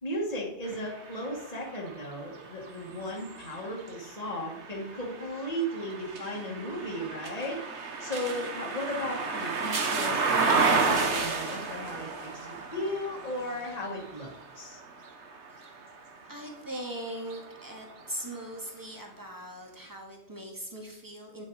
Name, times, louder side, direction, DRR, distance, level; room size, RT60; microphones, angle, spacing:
voice 1, 0.0-7.6 8.0-12.5 12.7-14.8, equal, 35° left, -3 dB, 2.0 m, -36 dB
sound 1, 0.7-16.6 17.2-18.4, right 4 dB, 75° right, 1.5 m, -32 dB
voice 2, 16.3-21.5, right 1 dB, 15° right, 0 dB, 2.1 m, -40 dB
9.7 x 7.5 x 4.9 m, 0.81 s
omnidirectional pair, 1.2 m